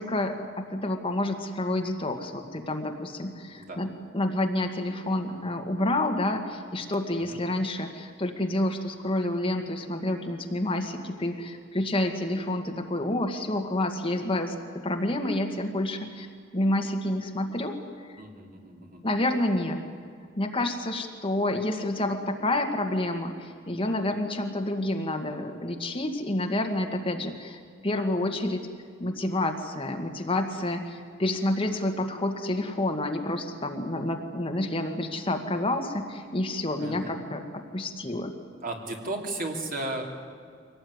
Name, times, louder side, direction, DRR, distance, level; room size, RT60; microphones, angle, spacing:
voice 1, 0.0-3.9 4.1-14.5 14.8-16.3 16.5-17.8 19.0-19.8 20.4-28.6 29.0-38.3, left 1 dB, 30° left, 4 dB, 1.8 m, -29 dB
voice 2, 18.2-19.0 36.8-37.2 38.6-40.0, right 2 dB, 45° right, 2 dB, 3.2 m, -35 dB
24.5 x 18.0 x 9.6 m, 2.1 s
head